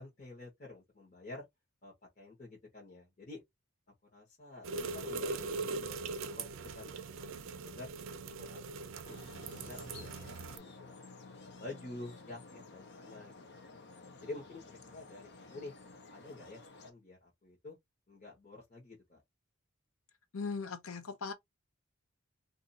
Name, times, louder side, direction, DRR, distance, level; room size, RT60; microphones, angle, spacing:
voice 1, 0.0-1.4 1.8-3.4 4.1-6.5 6.7-7.9 8.2-10.9 11.4-13.7 14.2-15.7 16.1-17.8 18.1-19.2, left 2 dB, 35° left, 1.2 m, -49 dB
sound 1, 4.6-10.6, right 3 dB, 65° right, 0.5 m, -41 dB
sound 2, 9.0-16.9, left 3 dB, 55° left, 0.8 m, -53 dB
voice 2, 20.3-21.3, left 4 dB, 90° left, 0.7 m, -39 dB
2.6 x 2.5 x 4.0 m
head